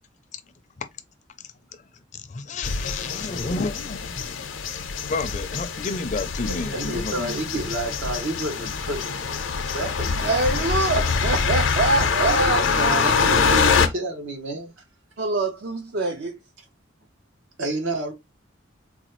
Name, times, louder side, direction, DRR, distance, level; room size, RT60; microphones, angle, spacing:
voice 1, 2.1-4.3 4.7-7.3, left 3 dB, 40° left, 0.4 m, -31 dB
sound 1, 2.6-13.9, left 5 dB, 80° left, 0.6 m, -24 dB
voice 2, 6.5-10.4 12.0-14.8 16.6-16.7 17.6-18.1, right 2 dB, 80° right, 1.1 m, -30 dB
voice 3, 10.2-12.6 15.2-16.4, right 3 dB, 55° right, 0.4 m, -24 dB
3.9 x 2.3 x 3.0 m
head